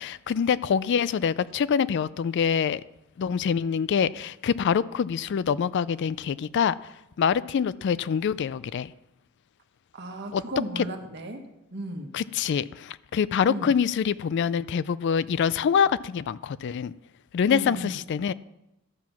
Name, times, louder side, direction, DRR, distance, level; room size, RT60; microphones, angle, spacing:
voice 1, 0.0-2.8 3.2-6.9 7.2-8.9 10.3-10.4 10.8-10.9 12.1-16.9 17.3-18.3, left 7 dB, 55° left, 18 dB, 0.3 m, -25 dB
voice 2, 9.9-11.4 11.7-12.2 13.5-13.7 17.5-17.9, right 1 dB, 50° right, 4 dB, 1.4 m, -34 dB
12.5 x 7.5 x 6.0 m, 0.89 s
head